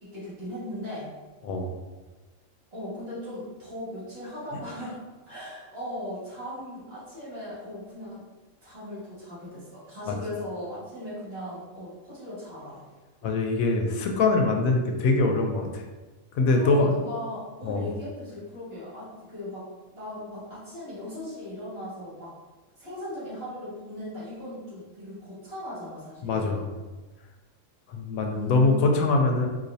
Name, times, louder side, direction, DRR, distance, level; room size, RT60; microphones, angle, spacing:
voice 1, 0.0-1.1 2.7-5.0 5.3-8.2 8.6-12.8 16.5-22.3 22.8-26.7 28.3-28.7, left 1 dB, 50° right, -9 dB, 1.8 m, -38 dB
voice 2, 13.2-15.8 16.3-16.9 17.6-17.8 26.2-26.7 27.9-29.5, left 3 dB, 85° left, 3 dB, 1.0 m, -23 dB
4.1 x 2.6 x 2.6 m, 1.2 s
omnidirectional pair, 1.4 m